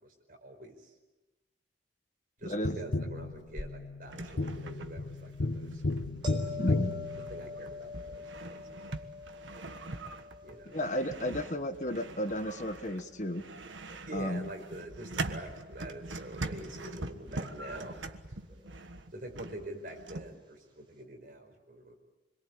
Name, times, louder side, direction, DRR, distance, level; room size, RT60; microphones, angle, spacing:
voice 1, 0.0-0.9 2.4-5.8 6.7-6.8 7.3-8.9 10.4-10.8 14.1-18.0 19.1-21.9, right 1 dB, 50° right, 3 dB, 5.1 m, -45 dB
voice 2, 2.4-2.8 6.6-7.0 10.7-13.4 14.1-14.5, left 1 dB, 40° left, 8 dB, 1.4 m, -33 dB
Tap, 2.6-7.9 10.5-10.6, left 2 dB, 85° left, 1.4 m, -34 dB
sound 1, 4.1-20.3, right 2 dB, 85° right, 1.5 m, -43 dB
sound 2, 6.2-13.2 18.5-18.7, left 3 dB, 25° right, 4.3 m, -45 dB
27.5 x 22.5 x 8.8 m, 1.1 s
head